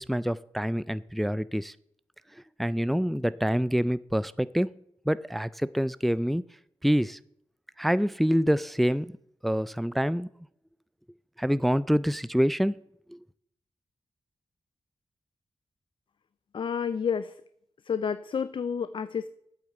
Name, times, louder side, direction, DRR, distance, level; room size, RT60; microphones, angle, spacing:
voice 1, 0.0-1.7 2.6-4.8 5.1-6.4 6.8-7.2 7.8-9.2 9.4-10.3 11.4-12.8 13.1-13.2, equal, ahead, 17 dB, 0.4 m, -26 dB
voice 2, 16.5-17.3 17.8-19.3, left 6 dB, 55° left, 14 dB, 0.5 m, -30 dB
8.5 x 6.5 x 8.1 m, 0.73 s
cardioid pair, 60°, 10 cm